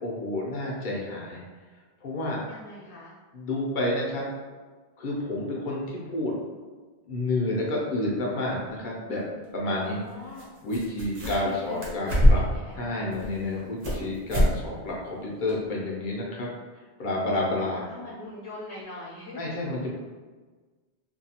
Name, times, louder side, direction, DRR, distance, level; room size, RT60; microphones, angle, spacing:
voice 1, 0.0-1.4 2.0-2.4 3.3-4.3 5.0-6.4 7.1-9.3 9.5-10.0 10.6-12.4 12.7-16.5 17.0-17.8 19.4-19.9, left 2 dB, 55° left, -3 dB, 0.7 m, -29 dB
voice 2, 2.5-3.2 9.7-10.5 11.2-13.1 17.9-19.6, left 1 dB, 85° left, -5 dB, 0.9 m, -42 dB
Ripping Cardboard, 10.4-10.5 10.7-11.5 11.8-12.6 13.1-14.0 14.3-14.6 14.9-15.0 15.5-15.6, equal, 45° right, 0.8 m, -23 dB
2.6 x 2.3 x 2.8 m, 1.4 s
omnidirectional pair, 1.1 m